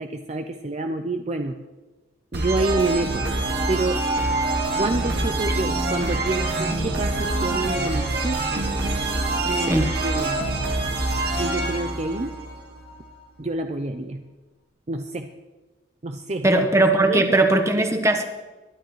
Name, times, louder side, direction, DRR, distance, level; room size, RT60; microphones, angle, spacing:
voice 1, 0.0-1.6 2.3-3.2 3.7-4.0 4.8-8.7 9.5-10.4 11.4-12.4 13.4-14.2 14.9-15.3 16.0-16.6 17.0-17.4 17.8-17.9, right 2 dB, 35° right, 6 dB, 0.5 m, -28 dB
sound 1, 2.3-12.9, right 2 dB, 60° right, 2.4 m, -25 dB
voice 2, 16.4-18.2, right 2 dB, 15° right, 6 dB, 1.1 m, -19 dB
22.0 x 12.0 x 3.2 m, 1.2 s
head